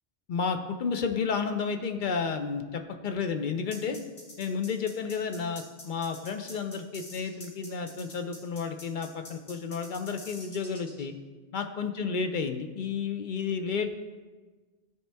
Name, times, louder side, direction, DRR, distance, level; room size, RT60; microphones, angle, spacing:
voice 1, 0.3-4.0 4.4-11.1 11.5-13.9, left 5 dB, 55° left, 7 dB, 0.6 m, -31 dB
sound 1, 3.7-11.0, left 1 dB, 90° left, 2.3 m, -46 dB
13.0 x 4.4 x 3.4 m, 1.3 s
omnidirectional pair, 1.1 m